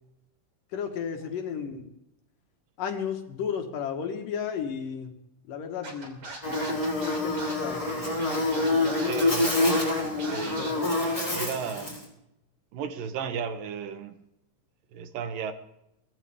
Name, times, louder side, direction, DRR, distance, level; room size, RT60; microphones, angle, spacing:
voice 1, 0.7-1.9 2.8-5.1 5.5-6.2 6.4-9.4 10.2-10.9, left 7 dB, 80° left, 4 dB, 3.3 m, -34 dB
Scratching (performance technique), 5.8-10.7, right 2 dB, 45° right, 3.8 m, -40 dB
Buzz, 6.4-12.0, left 2 dB, 10° left, 5.3 m, -27 dB
voice 2, 9.0-9.6 9.8-10.0 10.3-10.8 11.3-12.0 12.7-14.1 14.9-15.5, right 6 dB, 85° right, 10 dB, 2.9 m, -34 dB
23.0 x 15.5 x 3.6 m, 0.84 s
omnidirectional pair, 3.8 m